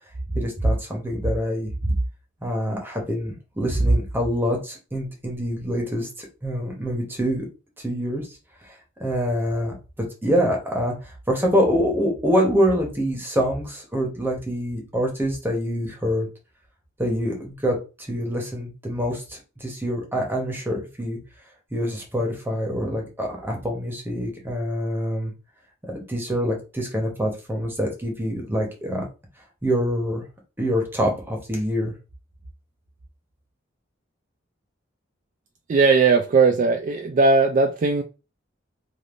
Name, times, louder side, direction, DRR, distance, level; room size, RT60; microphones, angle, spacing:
voice 1, 0.3-1.7 2.4-6.1 6.4-7.5 7.8-8.3 8.7-8.8 9.0-9.7 10.2-16.3 17.0-21.2 21.7-25.3 25.9-29.0 29.6-30.2 30.6-31.9, equal, 10° right, 0.9 m, -25 dB
voice 2, 35.7-38.0, right 4 dB, 45° right, 0.3 m, -18 dB
3.4 x 2.5 x 2.5 m
head